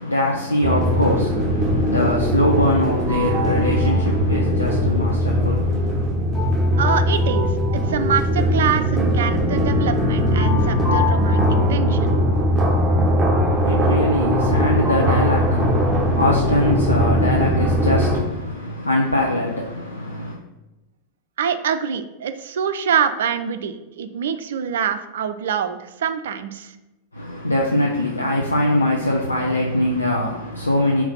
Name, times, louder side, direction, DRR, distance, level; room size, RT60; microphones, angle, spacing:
voice 1, 0.0-6.1 13.5-20.4 27.1-31.0, left 1 dB, 80° left, 0.6 m, -22 dB
sound 1, 0.6-18.2, equal, 15° right, 1.0 m, -20 dB
sound 2, 3.1-17.7, left 1 dB, 5° left, 1.7 m, -31 dB
voice 2, 6.8-12.2 21.4-26.8, right 8 dB, 60° right, 0.4 m, -25 dB
4.6 x 3.9 x 5.4 m
figure-of-eight pair, 90°, 0 cm